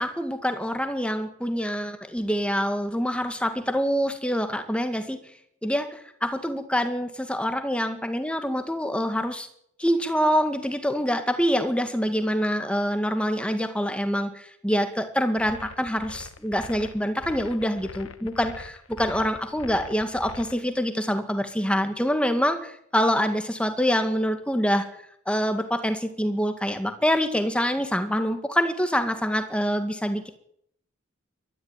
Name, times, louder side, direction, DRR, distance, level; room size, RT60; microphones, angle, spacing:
voice 1, 0.0-5.2 5.6-9.5 9.8-24.9 25.3-30.3, equal, 5° left, 7 dB, 2.1 m, -25 dB
sound 1, 15.4-20.6, left 3 dB, 70° left, 1.3 m, -42 dB
21.0 x 14.0 x 9.2 m, 0.70 s
head